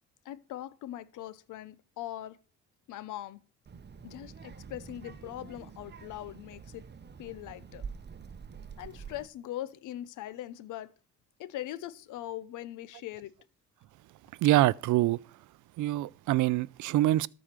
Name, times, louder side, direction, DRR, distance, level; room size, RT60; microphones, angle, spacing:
voice 1, 0.2-2.4 2.9-3.4 4.0-6.8 7.2-7.9 8.8-10.9 11.4-13.3, left 13 dB, 80° left, 0.8 m, -41 dB
Child speech kid speaking, 3.7-9.3, right 6 dB, 35° right, 1.0 m, -46 dB
voice 2, 14.4-15.2 15.8-17.3, right 16 dB, 80° right, 0.5 m, -25 dB
13.0 x 4.9 x 7.4 m
cardioid pair, 90°, 30 cm